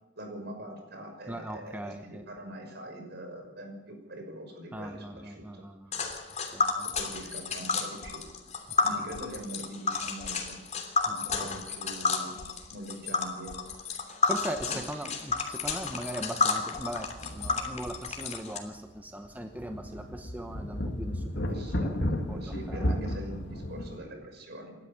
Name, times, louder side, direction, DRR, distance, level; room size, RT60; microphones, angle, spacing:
voice 1, 0.2-5.6 6.7-8.2 8.8-10.6 11.1-12.4 12.7-13.6 14.7-15.1 21.3-24.9, right 1 dB, 60° right, 4 dB, 6.0 m, -43 dB
voice 2, 1.3-2.2 4.7-6.0 6.5-6.9 11.3-11.6 14.1-23.0, right 1 dB, 10° right, 5 dB, 1.1 m, -40 dB
Tick, 5.9-18.6, left 4 dB, 40° left, 3.1 m, -31 dB
sound 1, 15.3-15.5 15.8-15.9 16.8-18.2 18.6-18.7 19.2-24.0, equal, 60° left, 2.3 m, -34 dB
28.0 x 13.0 x 7.2 m, 1.1 s
head